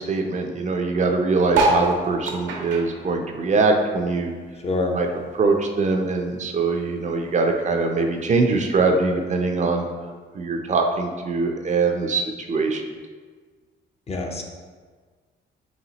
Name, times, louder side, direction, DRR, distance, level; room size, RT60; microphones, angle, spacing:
voice 1, 0.0-4.3 4.9-5.1 5.3-9.9 10.3-12.8, right 3 dB, 40° right, 3 dB, 0.5 m, -22 dB
sound 1, 1.5-4.3 4.6-6.1 6.6-6.7 6.9-7.0 7.2-7.6 8.3-8.4, right 2 dB, 70° right, 0.7 m, -26 dB
voice 2, 4.6-5.0 14.1-14.4, left 2 dB, 30° left, 2 dB, 0.5 m, -25 dB
4.2 x 3.4 x 2.9 m, 1.5 s
cardioid pair, 90°, 20 cm